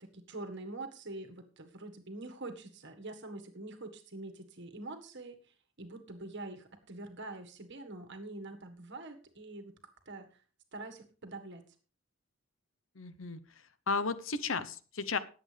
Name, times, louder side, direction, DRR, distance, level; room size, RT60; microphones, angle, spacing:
voice 1, 0.0-9.7 10.0-10.3 10.7-11.6, right 2 dB, 60° right, 6 dB, 1.7 m, -45 dB
voice 2, 13.0-13.4 13.9-15.2, left 4 dB, 70° left, 14 dB, 0.9 m, -33 dB
19.0 x 8.0 x 3.4 m, 0.37 s
head